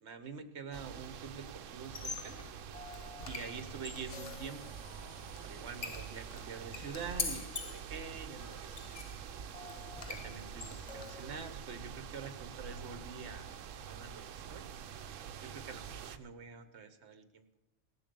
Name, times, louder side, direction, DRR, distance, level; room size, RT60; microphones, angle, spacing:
voice 1, 0.0-2.4 3.3-4.8 5.4-8.9 10.1-13.5 13.8-14.7 15.4-17.5, right 5 dB, 65° right, 9 dB, 1.4 m, -46 dB
sound 1, 0.7-16.2, right 8 dB, 90° right, 1.0 m, -46 dB
Squeak, 1.8-11.4, left 4 dB, 35° left, 0.8 m, -45 dB
sound 2, 4.1-7.3, left 7 dB, 55° left, 0.3 m, -60 dB
17.5 x 7.1 x 6.9 m, 0.99 s
omnidirectional pair, 1.3 m